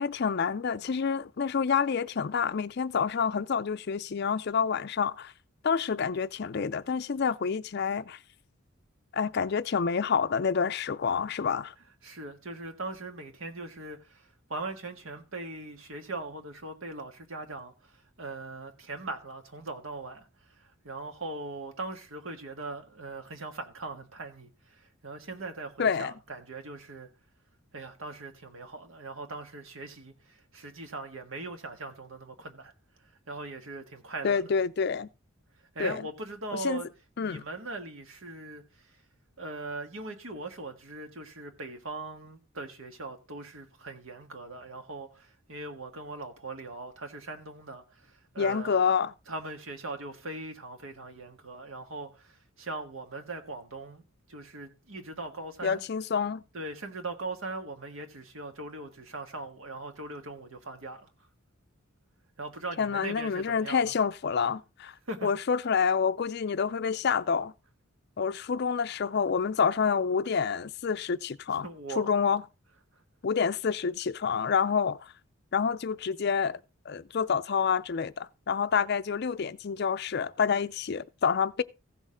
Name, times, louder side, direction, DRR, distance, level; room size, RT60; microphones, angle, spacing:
voice 1, 0.0-5.3 5.6-8.2 9.1-11.7 25.8-26.1 34.2-35.1 35.8-36.0 36.6-36.8 37.2-37.4 48.4-49.1 55.6-56.4 62.8-64.9 65.2-67.5 68.2-71.7 72.0-72.4 73.2-75.1 75.5-76.6 76.9-81.6, left 6 dB, 50° left, 0.4 m, -28 dB
voice 2, 12.0-27.1 27.7-32.7 33.3-34.4 35.7-36.9 37.2-39.0 39.4-48.8 49.3-54.0 54.3-55.8 56.5-61.1 62.4-63.9 65.0-65.3 71.6-72.1, right 2 dB, 70° right, 1.6 m, -40 dB
15.5 x 6.4 x 3.7 m
head